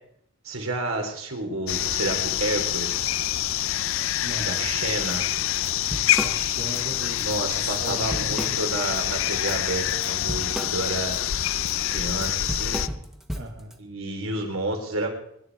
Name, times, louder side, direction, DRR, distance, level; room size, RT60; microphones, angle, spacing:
voice 1, 0.4-3.1 4.5-5.3 7.1-11.2 11.9-12.8 13.8-15.1, right 2 dB, 75° right, 3 dB, 3.9 m, -30 dB
sound 1, 1.7-12.9, left 12 dB, 65° left, 0.5 m, -26 dB
voice 2, 4.2-4.7 6.2-8.5 13.3-13.8, right 1 dB, 60° right, 1 dB, 3.1 m, -37 dB
Drum kit / Drum, 5.1-5.2 5.5-6.8 7.2-7.4 7.7-9.0 9.4-13.7, equal, ahead, 1.4 m, -34 dB
24.5 x 11.5 x 4.8 m, 0.71 s
head